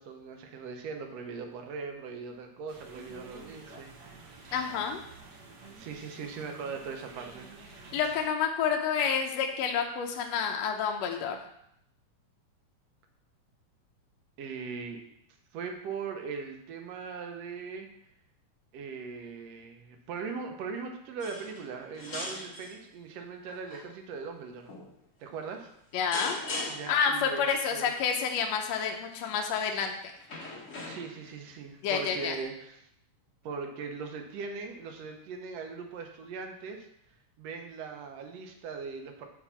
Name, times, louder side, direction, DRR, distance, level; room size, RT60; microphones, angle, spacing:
voice 1, 0.0-4.4 5.8-7.6 14.4-15.0 15.5-17.9 18.7-24.7 25.2-25.7 26.7-27.9 30.9-32.9 33.4-36.9 37.4-39.3, right 5 dB, 70° right, 4 dB, 1.8 m, -40 dB
sound 1, 2.7-8.3, right 3 dB, 90° right, 0.9 m, -50 dB
voice 2, 4.5-5.0 7.9-11.4 25.9-26.4 26.9-29.9 31.8-32.4, left 6 dB, 75° left, 3 dB, 1.7 m, -29 dB
sound 2, 21.2-21.7 21.9-22.8 23.5-23.8 24.7-24.9 26.1-27.0 29.1-29.4 30.2-31.3 32.4-32.5, left 2 dB, 55° left, 0.8 m, -39 dB
5.8 x 4.7 x 5.6 m, 0.77 s
omnidirectional pair, 3.3 m